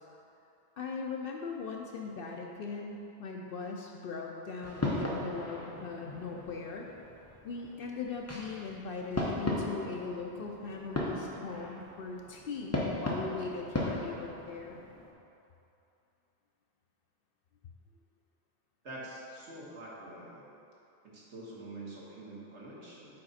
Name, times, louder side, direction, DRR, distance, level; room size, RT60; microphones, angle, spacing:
voice 1, 0.8-6.9 7.4-14.8, left 4 dB, 60° left, 1 dB, 0.7 m, -40 dB
sound 1, 4.6-15.1, left 1 dB, 15° left, 0.8 m, -37 dB
voice 2, 18.8-20.4 21.0-23.2, right 1 dB, 80° right, -6 dB, 1.8 m, -46 dB
7.7 x 4.9 x 4.1 m, 2.8 s
omnidirectional pair, 1.2 m